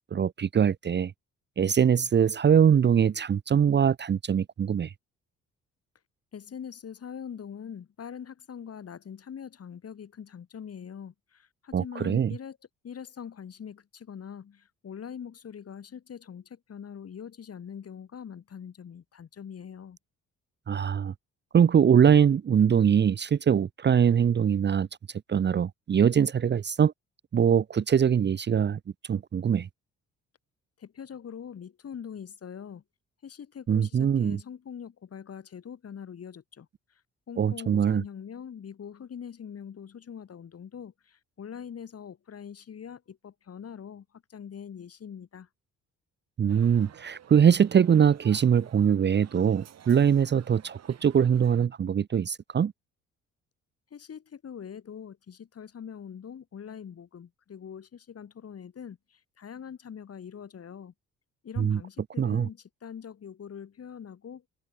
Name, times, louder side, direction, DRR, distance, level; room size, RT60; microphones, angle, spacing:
voice 1, 0.1-1.1 1.6-4.9 11.7-12.3 20.7-21.1 21.5-24.9 25.3-26.9 27.3-28.8 29.1-29.7 33.7-34.4 37.4-38.0 46.4-52.7 61.6-61.8 62.2-62.5, right 8 dB, 35° right, 0.7 m, -22 dB
voice 2, 6.3-12.6 12.8-20.0 30.8-32.8 33.2-36.7 37.3-45.5 53.9-60.9 61.4-64.4, left 8 dB, 50° left, 7.3 m, -43 dB
sound 1, 46.5-51.7, right 9 dB, 60° right, 2.2 m, -52 dB
cardioid pair, 90°, 30 cm